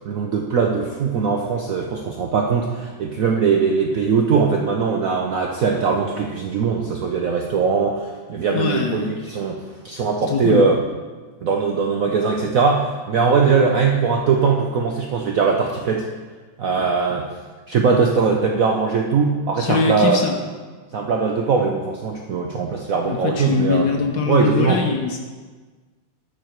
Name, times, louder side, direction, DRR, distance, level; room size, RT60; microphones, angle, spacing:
voice 1, 0.0-9.6 9.8-10.8 11.4-16.1 16.6-17.3 17.7-20.2 20.9-23.9 24.3-24.8, right 5 dB, 65° right, 1 dB, 0.8 m, -20 dB
voice 2, 8.5-9.1 10.2-10.7 19.6-20.4 23.0-25.2, left 5 dB, 65° left, 3 dB, 1.2 m, -22 dB
13.0 x 4.8 x 4.5 m, 1.4 s
omnidirectional pair, 2.1 m